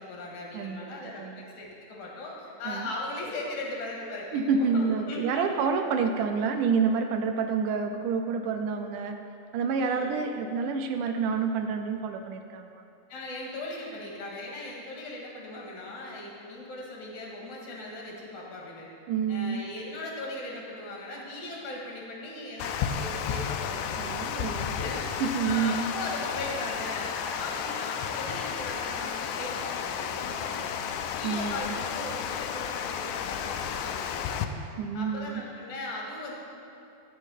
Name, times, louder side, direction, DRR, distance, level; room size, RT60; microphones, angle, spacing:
voice 1, 0.0-5.7 9.8-10.3 13.1-18.9 19.3-24.1 24.7-30.7 31.2-34.5 34.9-36.3, left 2 dB, 65° left, -2 dB, 3.0 m, -38 dB
voice 2, 0.5-1.4 2.7-2.9 4.3-9.2 9.5-12.8 19.1-19.7 24.0-24.8 25.2-25.9 31.2-31.7 34.8-35.4, right 5 dB, 80° right, 6 dB, 2.1 m, -28 dB
Water, 22.6-34.5, left 8 dB, 80° left, 1.9 m, -32 dB
12.0 x 5.5 x 8.9 m, 2.6 s
omnidirectional pair, 3.8 m